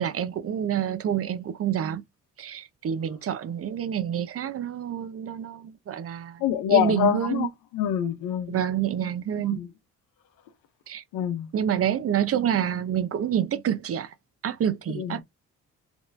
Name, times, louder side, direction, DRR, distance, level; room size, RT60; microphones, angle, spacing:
voice 1, 0.0-2.0 2.4-6.4 6.7-7.5 8.5-9.6 10.9-11.0 11.5-14.1 14.4-15.2, right 9 dB, 45° right, 0.7 m, -27 dB
voice 2, 6.4-8.6 9.5-9.7 11.1-11.5 14.9-15.2, left 11 dB, 90° left, 0.8 m, -25 dB
4.0 x 2.9 x 2.6 m
cardioid pair, 80°, 31 cm